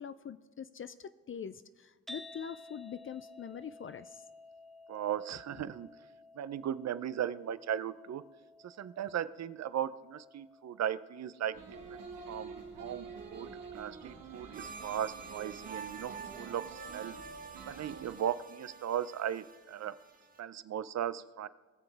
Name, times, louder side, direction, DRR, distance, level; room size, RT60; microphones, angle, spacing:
voice 1, 0.0-4.2, left 8 dB, 40° left, 13 dB, 0.5 m, -44 dB
sound 1, 2.1-18.3, left 2 dB, ahead, 1.0 m, -56 dB
voice 2, 4.9-5.9 6.3-8.2 8.6-11.6 11.9-12.5 12.8-17.2 17.7-20.0 20.4-21.5, right 10 dB, 55° right, 16 dB, 0.6 m, -37 dB
sound 2, 11.5-18.2, right 5 dB, 85° right, 1.6 m, -48 dB
sound 3, 14.5-20.4, right 5 dB, 25° right, 1.5 m, -48 dB
19.5 x 7.0 x 3.4 m, 1.4 s
supercardioid pair, 65°, 32 cm